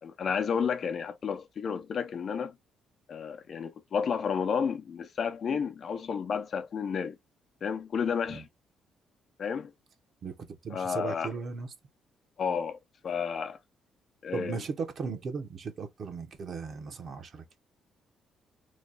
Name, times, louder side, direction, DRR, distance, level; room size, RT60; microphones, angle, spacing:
voice 1, 0.0-2.5 3.1-7.2 7.6-8.5 9.4-9.7 10.7-11.3 12.4-12.8 13.0-13.6 14.2-14.6, left 6 dB, 55° left, 0.7 m, -31 dB
voice 2, 10.2-11.7 14.3-17.6, right 5 dB, 55° right, 1.1 m, -37 dB
3.2 x 2.3 x 4.0 m
cardioid pair, 90°, 0 cm